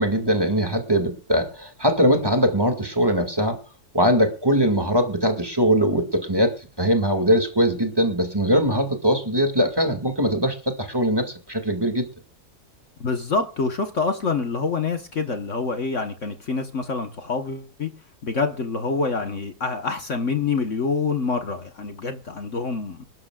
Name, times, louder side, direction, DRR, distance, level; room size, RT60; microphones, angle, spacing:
voice 1, 0.0-3.6 3.9-12.1, equal, 15° right, 2.1 m, -21 dB
voice 2, 13.0-17.9 18.2-23.0, left 4 dB, 50° left, 1.5 m, -26 dB
26.0 x 12.5 x 2.4 m
omnidirectional pair, 1.7 m